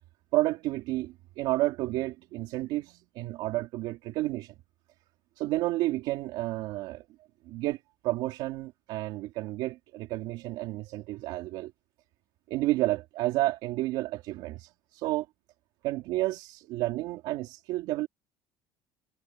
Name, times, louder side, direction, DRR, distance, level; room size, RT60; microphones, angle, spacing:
voice 1, 0.3-4.5 5.4-7.0 7.5-11.7 12.5-15.3 15.8-18.1, right 17 dB, 70° right, 2.8 m, -31 dB
cardioid pair, 160°, 8 cm